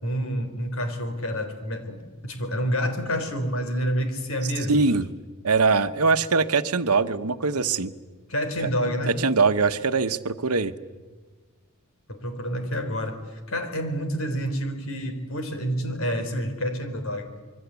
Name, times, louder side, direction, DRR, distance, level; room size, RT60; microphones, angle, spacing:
voice 1, 0.0-4.8 8.3-9.2 12.1-17.3, equal, 65° left, 8 dB, 4.0 m, -28 dB
voice 2, 4.7-5.1 5.4-7.9 9.1-10.7, right 4 dB, 85° right, 11 dB, 1.1 m, -22 dB
26.5 x 23.0 x 8.3 m, 1.4 s
head